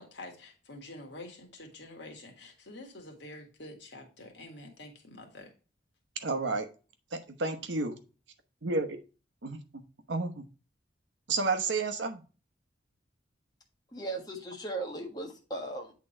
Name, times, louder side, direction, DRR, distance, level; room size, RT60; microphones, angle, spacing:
voice 1, 0.0-5.5, left 2 dB, 70° left, 3 dB, 2.0 m, -47 dB
voice 2, 6.2-6.7 7.1-7.9 8.6-9.0 9.4-9.6 10.1-10.4 11.3-12.2, right 3 dB, 80° right, 8 dB, 1.0 m, -31 dB
voice 3, 13.9-15.9, right 2 dB, 20° left, 2 dB, 1.4 m, -37 dB
8.5 x 3.8 x 4.3 m, 0.34 s
head